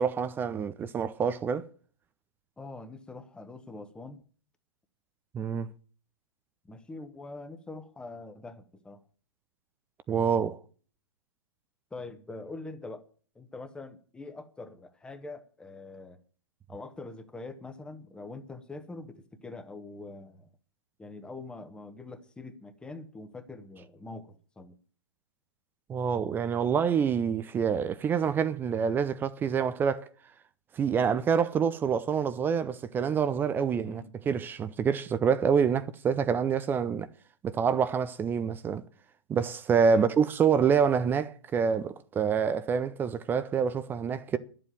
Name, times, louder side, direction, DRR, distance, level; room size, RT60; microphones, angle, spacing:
voice 1, 0.0-1.6 5.3-5.7 10.1-10.6 25.9-30.1 30.7-37.1 37.4-38.8 39.3-44.4, right 6 dB, 15° right, 0.6 m, -27 dB
voice 2, 2.6-4.2 6.6-9.0 11.9-13.0 13.3-16.2 16.7-20.5 21.0-24.8 33.8-34.1 39.9-40.1, left 3 dB, 5° left, 1.2 m, -44 dB
11.0 x 7.7 x 9.3 m
figure-of-eight pair, 120°, 15 cm